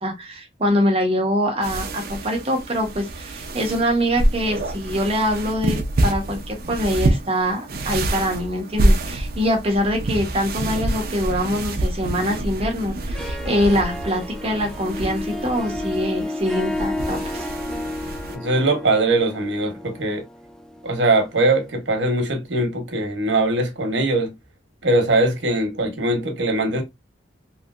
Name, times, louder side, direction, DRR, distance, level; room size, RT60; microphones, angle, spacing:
voice 1, 0.0-17.5, equal, 35° right, 0.9 m, -24 dB
sound 1, 1.6-18.4, right 1 dB, 55° right, 0.6 m, -26 dB
Harp, 13.0-21.6, left 1 dB, 5° left, 0.3 m, -32 dB
voice 2, 18.3-20.2 20.8-24.3 24.8-26.8, right 2 dB, 80° right, 1.0 m, -21 dB
3.1 x 2.8 x 2.4 m
head